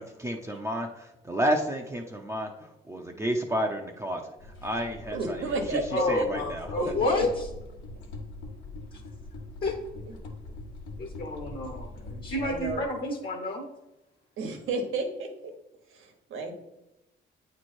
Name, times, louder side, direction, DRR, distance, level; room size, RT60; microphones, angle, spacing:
voice 1, 0.0-5.8 6.1-6.9, equal, 15° right, 1 dB, 0.6 m, -31 dB
sound 1, 4.4-12.9, left 2 dB, 85° left, 1.1 m, -42 dB
voice 2, 5.1-6.3 6.7-7.2 12.4-12.9 14.4-15.3 15.9-16.5, right 3 dB, 85° right, 4 dB, 1.2 m, -31 dB
voice 3, 5.9-7.3 9.6-9.8 11.0-13.7, left 3 dB, 50° left, 1 dB, 1.1 m, -30 dB
8.6 x 3.2 x 4.3 m, 0.92 s
cardioid pair, 90°, 20 cm